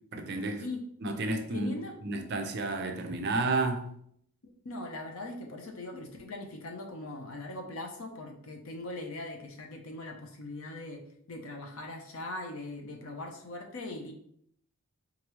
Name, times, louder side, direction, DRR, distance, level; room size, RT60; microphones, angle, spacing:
voice 1, 0.1-0.6 1.0-1.7 2.0-3.9, right 2 dB, 50° right, 0.5 m, -31 dB
voice 2, 1.5-2.0 4.4-11.0 11.3-14.1, left 2 dB, 65° left, 0.7 m, -40 dB
4.8 x 2.6 x 3.0 m
head